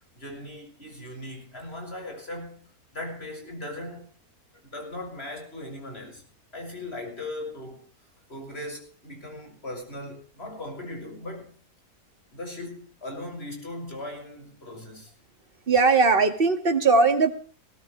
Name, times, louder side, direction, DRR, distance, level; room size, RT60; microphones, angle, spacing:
voice 1, 0.0-2.6 2.9-4.1 4.6-6.2 6.5-7.9 8.3-11.5 12.3-15.1, left 1 dB, 40° left, 7.2 m, -38 dB
voice 2, 15.7-17.3, right 4 dB, 40° right, 2.2 m, -19 dB
20.5 x 17.5 x 3.3 m
omnidirectional pair, 1.6 m